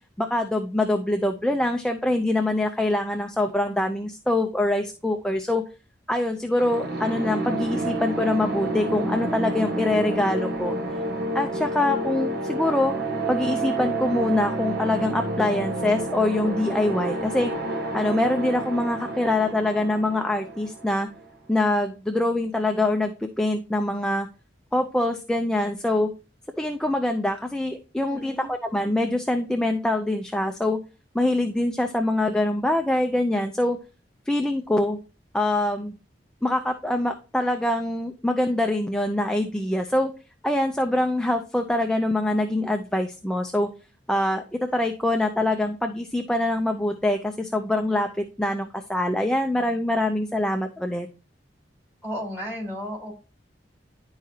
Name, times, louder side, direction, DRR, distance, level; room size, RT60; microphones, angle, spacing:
voice 1, 0.2-5.6 6.1-10.7 11.3-13.0 13.3-17.5 17.9-21.1 21.5-24.3 24.7-26.1 26.6-30.8 31.1-33.8 34.3-35.0 35.3-35.9 36.4-40.1 40.4-43.7 44.1-44.4 44.7-51.1, left 1 dB, 5° left, 4 dB, 0.5 m, -24 dB
sound 1, 6.6-21.3, right 2 dB, 60° right, 1.2 m, -29 dB
voice 2, 28.1-28.5 52.0-53.1, equal, 15° right, -2 dB, 3.7 m, -33 dB
11.0 x 4.8 x 2.8 m, 0.33 s
head